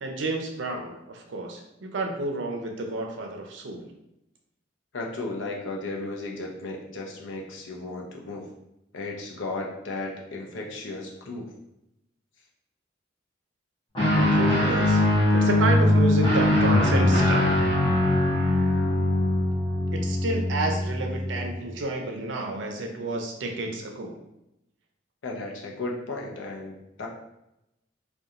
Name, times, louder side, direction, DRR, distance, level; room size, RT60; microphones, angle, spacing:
voice 1, 0.0-3.9 14.2-15.0 15.3-17.6 19.9-24.2, right 2 dB, 70° right, 2 dB, 0.5 m, -30 dB
voice 2, 4.9-8.4 8.9-11.5 25.2-27.1, left 2 dB, 80° left, -1 dB, 0.6 m, -35 dB
Guitar, 13.9-21.6, left 1 dB, 25° left, 0.7 m, -22 dB
2.8 x 2.2 x 2.4 m, 0.86 s
head